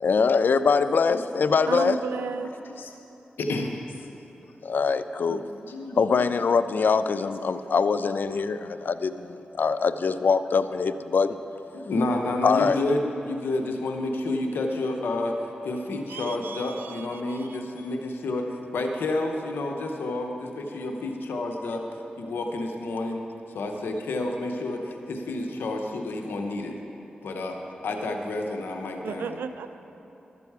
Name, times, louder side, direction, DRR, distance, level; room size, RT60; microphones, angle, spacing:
voice 1, 0.0-2.0 4.6-5.4 6.0-11.4 12.4-12.8, left 5 dB, 65° left, 12 dB, 0.4 m, -23 dB
voice 2, 1.7-2.5 16.1-17.6 29.0-29.8, right 6 dB, 90° right, 11 dB, 0.4 m, -34 dB
voice 3, 5.5-6.0 7.4-7.6 11.7-18.5 18.7-21.8 22.2-23.2 23.5-26.8 27.2-27.6 27.8-29.4, left 2 dB, 90° left, 3 dB, 0.8 m, -30 dB
12.5 x 6.9 x 4.7 m, 2.9 s
cardioid pair, 40°, 3 cm